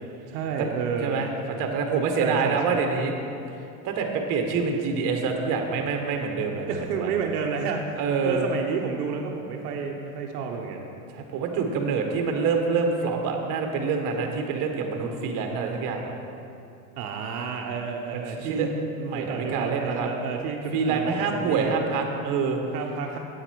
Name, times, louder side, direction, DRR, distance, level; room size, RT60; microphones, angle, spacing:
voice 1, 0.3-1.3 2.2-2.9 6.7-10.9 17.0-18.7 19.1-21.8 22.7-23.2, right 5 dB, 75° right, 1 dB, 1.0 m, -31 dB
voice 2, 1.6-3.1 3.8-7.1 8.0-8.5 11.1-16.1 18.1-20.1 20.7-22.6, right 5 dB, 45° right, 3 dB, 1.4 m, -26 dB
9.0 x 8.4 x 4.6 m, 2.7 s
supercardioid pair, 125°, 45 cm